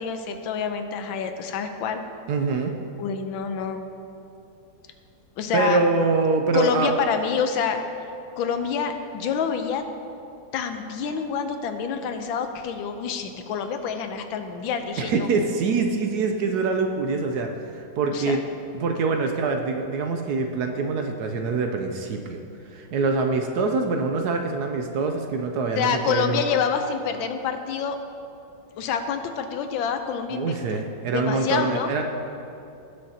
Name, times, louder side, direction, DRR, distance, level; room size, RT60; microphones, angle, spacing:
voice 1, 0.0-2.0 3.0-3.8 5.4-5.8 6.5-7.8 8.4-9.8 10.5-15.3 18.1-18.4 25.7-28.0 28.8-30.8 31.1-31.9, left 6 dB, 90° left, 7 dB, 1.5 m, -27 dB
voice 2, 2.3-2.7 5.5-6.9 15.0-18.4 18.8-22.4 22.7-26.4 30.3-32.0, right 4 dB, 70° right, 4 dB, 1.0 m, -24 dB
18.0 x 6.5 x 2.8 m, 2.7 s
omnidirectional pair, 2.1 m